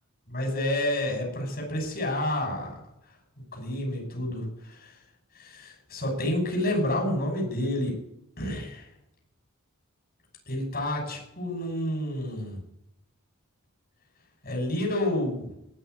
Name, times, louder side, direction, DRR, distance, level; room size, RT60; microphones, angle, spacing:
voice 1, 0.3-2.7 3.5-5.0 5.3-7.9 8.4-8.9 10.5-12.6 14.4-15.5, left 1 dB, 45° left, 1 dB, 6.4 m, -29 dB
18.5 x 6.6 x 9.6 m, 0.79 s
head